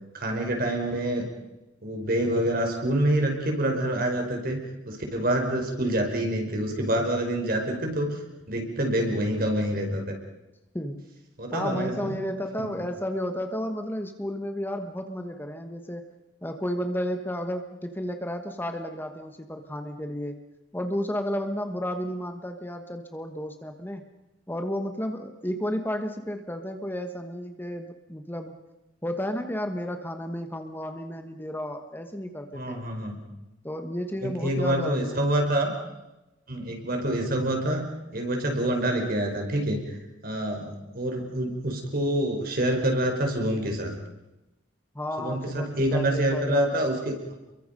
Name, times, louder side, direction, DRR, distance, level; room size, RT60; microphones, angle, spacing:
voice 1, 0.1-1.3 1.8-4.6 4.8-8.2 8.5-10.1 11.4-12.2 12.6-12.7 32.5-33.2 34.2-35.7 36.5-37.8 38.1-40.0 40.2-43.9 45.2-47.4, right 1 dB, 55° right, 3 dB, 5.0 m, -26 dB
voice 2, 10.7-11.1 11.5-16.0 16.4-20.4 20.7-24.0 24.5-28.5 29.0-32.8 33.6-35.2 44.9-46.8, equal, 10° left, 6 dB, 1.4 m, -32 dB
29.5 x 23.0 x 5.4 m, 1.0 s
head